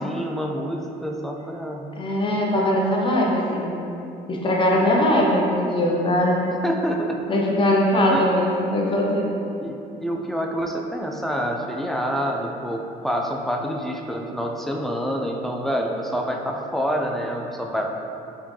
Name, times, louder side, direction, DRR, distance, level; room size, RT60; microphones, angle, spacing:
voice 1, 0.0-1.9 6.5-7.2 8.1-8.3 9.6-17.9, equal, ahead, 0 dB, 0.4 m, -27 dB
voice 2, 2.0-3.8 4.3-6.5 7.3-9.3, left 1 dB, 30° left, -2 dB, 0.7 m, -21 dB
4.3 x 3.6 x 3.1 m, 2.8 s
cardioid pair, 110°, 17 cm